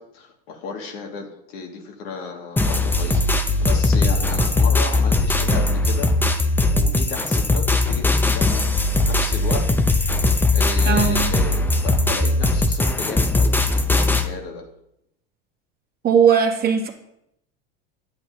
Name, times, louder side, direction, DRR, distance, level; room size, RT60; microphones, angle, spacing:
voice 1, 0.0-6.2 6.7-9.8 10.5-14.7, left 5 dB, 75° left, 1 dB, 1.9 m, -34 dB
sound 1, 2.6-14.3, left 2 dB, 5° left, 0.5 m, -19 dB
voice 2, 10.9-11.2 16.0-16.9, right 7 dB, 30° right, 4 dB, 1.2 m, -18 dB
9.4 x 8.2 x 2.7 m, 0.79 s
supercardioid pair, 110°, 30 cm